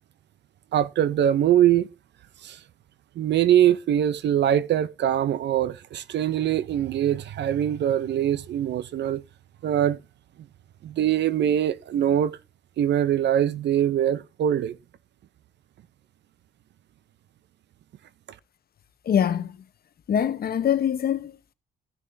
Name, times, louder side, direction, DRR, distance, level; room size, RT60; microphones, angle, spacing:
voice 1, 0.7-1.9 2.4-2.6 3.2-9.2 9.6-10.0 10.8-12.4 12.8-14.8, right 10 dB, 60° right, 0.5 m, -23 dB
voice 2, 19.1-19.6 20.1-21.5, left 9 dB, 50° left, 0.8 m, -24 dB
15.5 x 6.7 x 2.6 m
cardioid pair, 90°, 20 cm